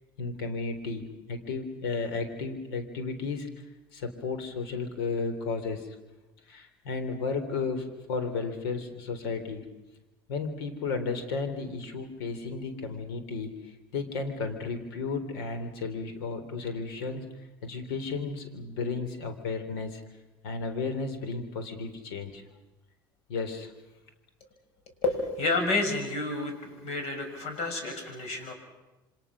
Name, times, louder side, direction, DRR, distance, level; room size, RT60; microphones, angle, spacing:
voice 1, 0.2-3.5 3.9-5.9 6.5-9.6 10.3-17.3 17.6-20.0 20.4-22.4 23.3-23.7, left 4 dB, 80° left, 8 dB, 3.6 m, -33 dB
voice 2, 25.0-28.5, left 3 dB, 60° left, 5 dB, 6.6 m, -30 dB
28.0 x 25.5 x 6.3 m, 1.0 s
hypercardioid pair, 80°, 12 cm